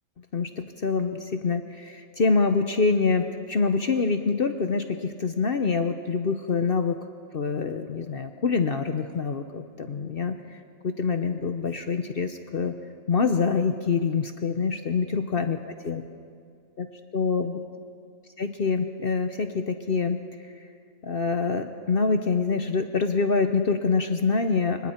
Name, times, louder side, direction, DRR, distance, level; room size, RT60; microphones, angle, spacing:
voice 1, 0.3-7.0 7.3-10.6 10.8-12.8 13.1-15.6 15.8-16.0 16.8-16.9 17.1-17.6 18.4-20.5 21.0-24.9, left 4 dB, 50° left, 7 dB, 0.9 m, -25 dB
26.0 x 24.0 x 4.4 m, 2.3 s
omnidirectional pair, 1.4 m